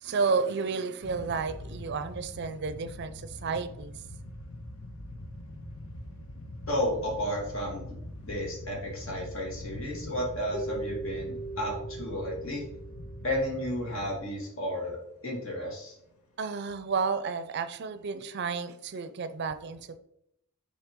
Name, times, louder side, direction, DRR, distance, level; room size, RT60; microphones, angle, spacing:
voice 1, 0.0-3.9 16.4-20.0, right 5 dB, 50° right, 12 dB, 0.4 m, -31 dB
sound 1, 1.0-14.5 14.7-14.9 15.6-15.9 16.5-16.7 17.8-18.0, left 1 dB, 85° left, 1.1 m, -43 dB
voice 2, 6.7-8.0 8.2-12.6 13.2-15.0 15.2-15.9, equal, 65° left, -1 dB, 2.1 m, -32 dB
Keyboard (musical), 10.5-13.8, right 2 dB, 30° left, 0.7 m, -40 dB
7.1 x 4.3 x 3.6 m, 0.77 s
head